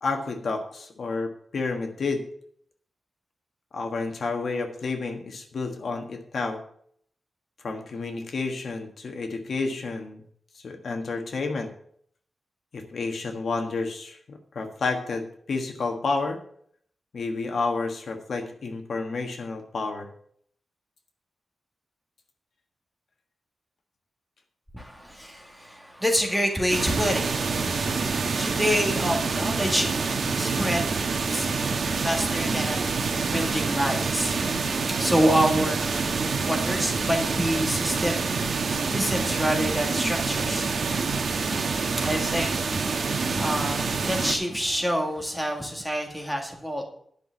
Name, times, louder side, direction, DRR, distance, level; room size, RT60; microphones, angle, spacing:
voice 1, 0.0-2.2 3.7-6.6 7.6-10.2 10.5-11.7 12.7-16.4 17.1-20.1, left 3 dB, 60° left, 4 dB, 1.4 m, -30 dB
voice 2, 24.7-31.0 31.3-34.4 35.0-38.4 38.7-40.7 42.0-42.5 42.8-46.8, equal, ahead, 1 dB, 1.9 m, -28 dB
sound 1, 26.7-44.4, right 4 dB, 65° right, 1.3 m, -27 dB
10.5 x 6.1 x 7.0 m, 0.63 s
wide cardioid pair, 175°, 0 cm